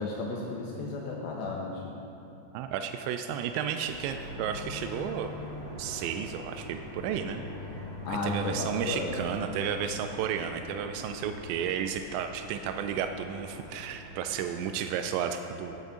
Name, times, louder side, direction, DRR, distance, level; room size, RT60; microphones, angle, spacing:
voice 1, 0.0-2.0 8.1-9.2, left 3 dB, 75° left, -2 dB, 2.7 m, -33 dB
voice 2, 2.5-5.3 5.8-7.4 8.1-15.8, right 8 dB, 90° right, 6 dB, 2.5 m, -33 dB
sound 1, 3.8-14.7, left 1 dB, 55° right, 4.5 m, -43 dB
18.0 x 8.0 x 3.8 m, 2.9 s
omnidirectional pair, 5.6 m